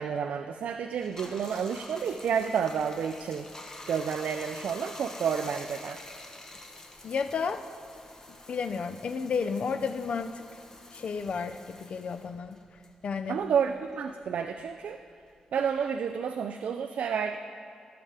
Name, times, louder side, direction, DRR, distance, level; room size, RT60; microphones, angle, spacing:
voice 1, 0.0-3.5 3.9-6.0 13.3-15.0 15.5-17.4, right 7 dB, 75° right, 7 dB, 0.3 m, -30 dB
Bathtub (filling or washing), 1.0-13.8 14.1-15.9, left 2 dB, 25° left, 0.9 m, -47 dB
voice 2, 7.0-7.6 8.5-10.4 10.9-12.6 13.0-13.4, left 5 dB, 55° left, 9 dB, 0.4 m, -32 dB
14.5 x 6.6 x 3.3 m, 2.4 s
wide cardioid pair, 115°, 2 cm